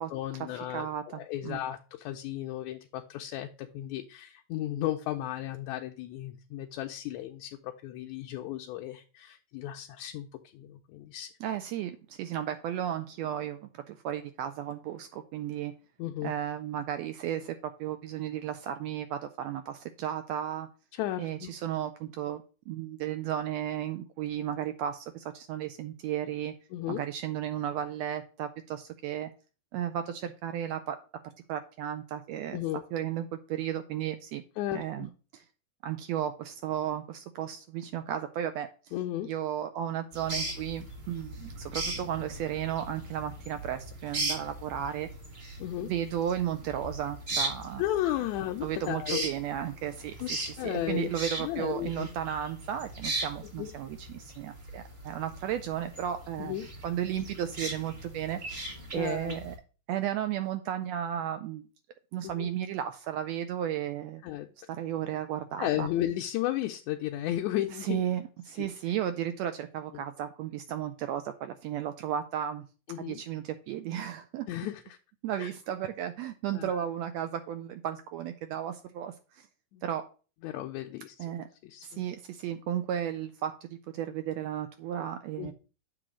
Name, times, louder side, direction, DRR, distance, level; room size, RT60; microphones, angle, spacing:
voice 1, 0.1-10.3 10.5-11.3 16.0-16.3 20.9-21.5 26.7-27.0 32.5-32.8 34.6-35.1 38.9-39.3 45.6-45.9 47.8-49.3 50.2-50.3 50.6-51.1 51.4-52.1 53.6-53.7 56.4-56.6 58.9-59.4 62.4-62.5 64.2-64.5 65.6-68.0 68.6-68.7 69.9-70.0 72.9-73.2 74.5-75.0 75.4-75.5 76.5-76.8 79.7-79.8 80.4-81.3 81.6-82.0 85.4-85.5, left 13 dB, 80° left, 3 dB, 1.7 m, -34 dB
voice 2, 0.7-1.6 11.4-15.7 16.2-20.7 21.2-26.5 26.9-29.3 29.7-31.0 31.5-32.6 32.9-34.4 34.7-35.4 35.8-38.9 39.2-45.1 45.8-47.8 48.6-56.6 56.8-59.5 59.9-61.7 62.1-64.2 64.7-65.9 67.8-72.6 73.0-74.5 75.2-79.5 79.8-80.0 81.2-81.5 81.8-83.7 83.9-85.5, right 10 dB, 85° right, 9 dB, 1.5 m, -34 dB
sound 1, 40.1-59.6, right 2 dB, 35° right, 0.9 m, -39 dB
7.7 x 3.0 x 6.2 m, 0.36 s
omnidirectional pair, 3.6 m